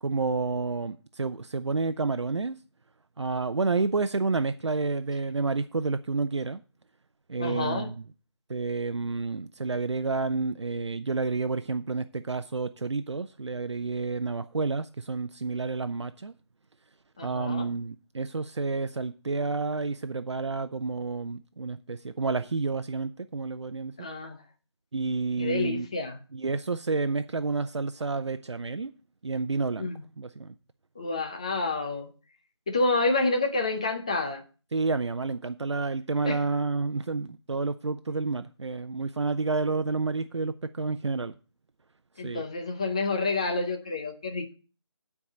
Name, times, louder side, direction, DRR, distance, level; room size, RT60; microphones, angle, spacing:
voice 1, 0.0-2.6 3.2-6.6 7.3-8.0 8.5-16.3 17.2-23.9 24.9-25.9 26.3-28.9 29.2-29.9 30.2-30.5 34.7-41.3 42.2-42.4, right 3 dB, 75° right, 0.7 m, -30 dB
voice 2, 7.4-7.9 17.2-17.7 24.0-24.4 25.4-26.2 29.8-30.0 31.0-32.1 32.7-34.4 36.2-36.4 42.2-44.5, left 3 dB, 15° left, 0.6 m, -28 dB
9.8 x 4.8 x 7.5 m
figure-of-eight pair, 170°, 15 cm